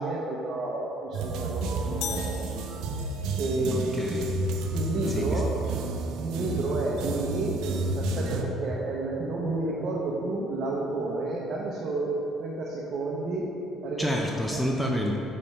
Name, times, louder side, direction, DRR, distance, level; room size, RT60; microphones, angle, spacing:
voice 1, 0.0-2.6 3.4-4.0 4.7-5.5 6.2-7.6 7.9-12.1 12.4-13.5 13.8-14.1 14.5-14.6, right 2 dB, 45° right, -4 dB, 0.7 m, -30 dB
sound 1, 1.1-8.4, right 3 dB, 75° right, 0.5 m, -31 dB
sound 2, 2.0-3.4, left 9 dB, 85° left, 0.3 m, -38 dB
voice 2, 3.7-4.3 4.9-5.4 14.0-15.2, equal, 5° left, 0 dB, 0.4 m, -29 dB
5.3 x 4.2 x 5.5 m, 2.9 s
cardioid pair, 135°, 0 cm